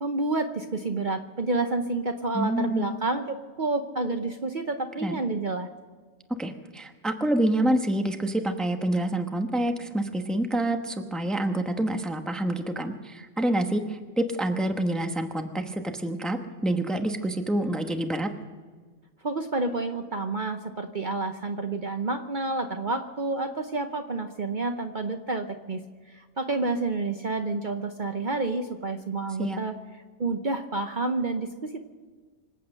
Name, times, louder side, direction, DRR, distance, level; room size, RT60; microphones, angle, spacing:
voice 1, 0.0-5.7 19.2-25.8 26.1-29.8 30.2-31.8, right 3 dB, 45° right, 6 dB, 0.9 m, -29 dB
voice 2, 2.3-2.9 5.0-5.2 6.3-18.3 29.4-29.6, right 1 dB, ahead, 5 dB, 0.9 m, -27 dB
25.5 x 8.6 x 6.6 m, 1.5 s
omnidirectional pair, 1.3 m